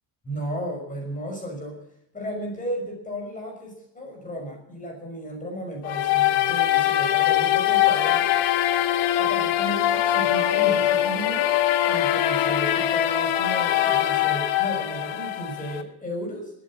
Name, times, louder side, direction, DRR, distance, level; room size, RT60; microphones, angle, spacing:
voice 1, 0.2-1.8 2.1-8.3 9.2-11.5 11.9-16.5, equal, 15° left, 1 dB, 5.9 m, -34 dB
sound 1, 5.8-15.8, left 12 dB, 80° left, 1.6 m, -22 dB
19.5 x 8.9 x 7.5 m, 0.77 s
cardioid pair, 155°, 48 cm